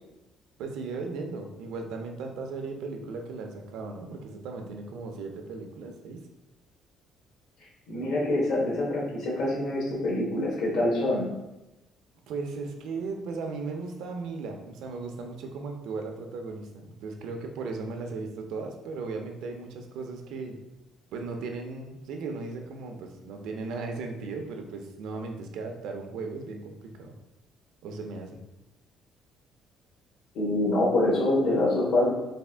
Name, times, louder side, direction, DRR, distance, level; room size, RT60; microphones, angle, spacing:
voice 1, 0.6-6.3 12.3-20.6 21.1-27.1 27.8-28.4, right 4 dB, 80° right, 4 dB, 0.5 m, -36 dB
voice 2, 7.9-11.3 30.3-32.1, left 1 dB, 75° left, -4 dB, 1.3 m, -25 dB
3.4 x 2.4 x 3.4 m, 0.96 s
cardioid pair, 155°, 0 cm